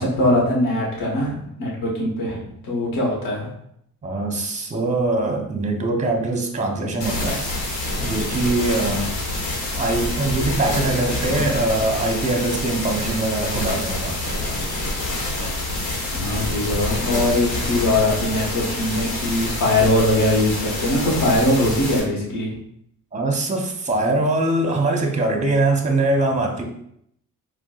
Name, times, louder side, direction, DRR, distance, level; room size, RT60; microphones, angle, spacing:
voice 1, 0.0-3.5 11.3-11.5 16.1-22.5, left 1 dB, 60° left, -4 dB, 1.1 m, -21 dB
voice 2, 4.0-7.4 8.0-9.1 9.8-14.4 23.1-26.6, right 2 dB, 20° right, 3 dB, 0.7 m, -22 dB
sound 1, 7.0-22.0, left 2 dB, 85° left, 1.1 m, -27 dB
4.4 x 2.2 x 2.3 m, 0.72 s
supercardioid pair, 60°, 37 cm